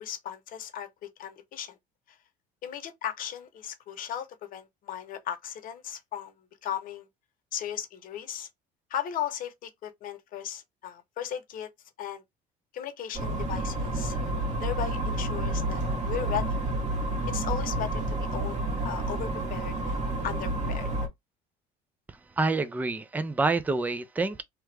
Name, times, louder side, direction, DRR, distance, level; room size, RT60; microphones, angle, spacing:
voice 1, 0.0-1.7 2.1-2.2 2.6-6.3 6.6-7.1 7.5-8.5 8.9-11.7 12.0-12.2 12.7-14.2 14.6-16.5 17.3-20.0 20.2-20.9, left 10 dB, 55° left, 0.9 m, -36 dB
sound 1, 13.1-21.1, right 1 dB, 40° right, 1.4 m, -30 dB
voice 2, 22.4-24.4, right 3 dB, 10° right, 0.4 m, -27 dB
2.9 x 2.3 x 3.2 m
supercardioid pair, 105°, 18 cm